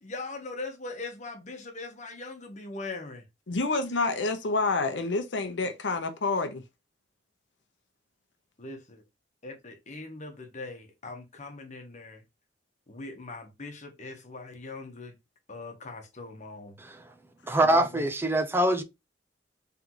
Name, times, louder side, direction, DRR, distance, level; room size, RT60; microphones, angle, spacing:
voice 1, 0.0-3.2 8.6-9.0 9.4-12.2 12.9-15.1 15.5-16.8, left 3 dB, 40° left, 1.0 m, -41 dB
voice 2, 3.5-6.6 17.6-18.0, left 3 dB, 85° left, 0.8 m, -28 dB
voice 3, 17.5-18.8, right 1 dB, 15° right, 0.5 m, -24 dB
3.8 x 3.4 x 2.9 m
head